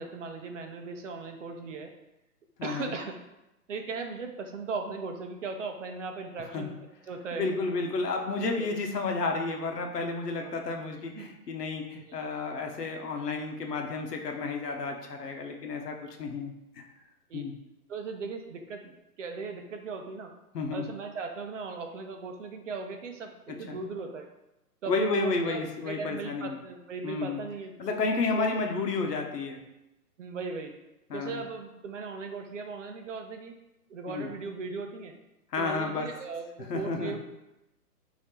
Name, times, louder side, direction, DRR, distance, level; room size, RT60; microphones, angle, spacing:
voice 1, 0.0-1.9 2.6-3.1 3.7-6.8 7.1-7.4 8.6-8.7 10.4-10.5 11.1-11.3 11.9-12.2 17.3-17.5 17.9-20.3 20.7-24.3 24.8-27.7 28.3-28.5 30.2-30.7 31.1-33.6 33.9-35.2 35.6-37.2, right 4 dB, 50° right, 4 dB, 0.6 m, -38 dB
voice 2, 2.6-2.9 6.5-6.7 7.3-16.8 17.3-17.6 20.5-20.8 23.7-23.8 24.9-26.6 27.0-27.4 27.8-29.6 31.1-31.4 34.1-34.3 35.5-36.1 36.7-37.2, left 3 dB, 80° left, 3 dB, 1.0 m, -31 dB
3.5 x 2.8 x 4.2 m, 0.93 s
hypercardioid pair, 150°, 47 cm